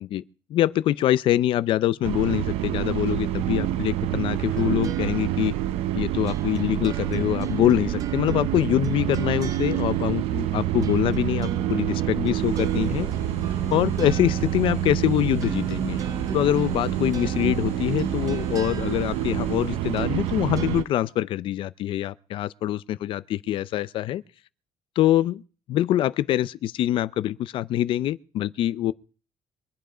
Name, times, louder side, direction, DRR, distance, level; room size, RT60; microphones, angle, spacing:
voice 1, 0.5-5.5 5.9-13.1 13.7-16.0 16.3-24.2 25.0-25.4 25.7-28.9, left 13 dB, 60° left, 0.6 m, -24 dB
sound 1, 2.0-20.8, right 13 dB, 85° right, 0.8 m, -27 dB
sound 2, 4.5-20.9, right 7 dB, 35° right, 0.7 m, -38 dB
sound 3, 12.4-20.4, left 4 dB, 30° left, 1.9 m, -40 dB
23.5 x 9.3 x 5.0 m
cardioid pair, 150°, 10 cm